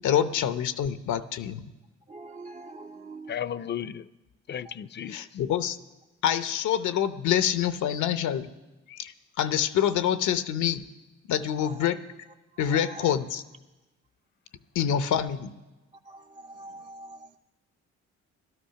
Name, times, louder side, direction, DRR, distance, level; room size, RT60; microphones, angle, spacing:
voice 1, 0.0-1.7 5.1-5.8 6.2-8.5 8.9-10.8 11.3-12.0 12.6-13.4 14.7-15.5, left 9 dB, 75° left, 12 dB, 0.8 m, -26 dB
voice 2, 2.1-3.4 4.7-4.8 11.6-11.9 12.5-13.1 16.1-17.4, right 2 dB, 25° right, 5 dB, 0.4 m, -44 dB
voice 3, 3.3-4.1 4.5-5.2, left 9 dB, 35° left, 17 dB, 0.5 m, -34 dB
14.5 x 12.5 x 5.7 m, 1.1 s
cardioid pair, 90°, 30 cm